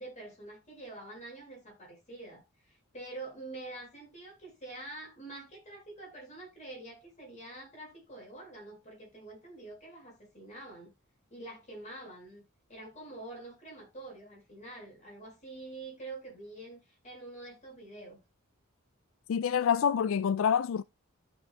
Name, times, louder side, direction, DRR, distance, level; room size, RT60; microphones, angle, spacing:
voice 1, 0.0-10.9 11.3-18.2, right 2 dB, 35° left, 5.4 m, -46 dB
voice 2, 19.3-20.8, left 7 dB, 70° left, 0.4 m, -27 dB
14.0 x 5.6 x 2.3 m
head